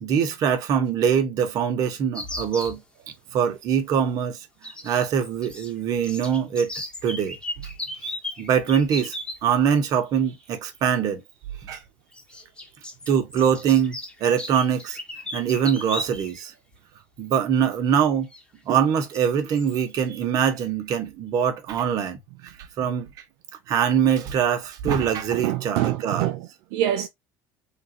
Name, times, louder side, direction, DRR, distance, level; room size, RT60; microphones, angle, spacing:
voice 1, 0.0-2.8 3.3-4.4 4.8-6.7 7.0-7.4 8.4-9.1 9.4-11.2 11.6-11.8 13.1-15.0 15.3-16.5 17.2-18.3 18.7-22.2 22.8-23.1 23.7-26.3, right 8 dB, 50° right, 1.1 m, -23 dB
sound 1, 2.2-2.8 4.6-5.7 6.0-9.4 10.8-10.9 12.1-16.4 16.7-16.8 18.3-18.4 19.0-19.2 19.6-19.8, left 1 dB, 10° left, 1.2 m, -36 dB
voice 2, 25.3-27.1, right 13 dB, 80° right, 0.5 m, -26 dB
3.7 x 2.5 x 2.8 m
supercardioid pair, 115°, 8 cm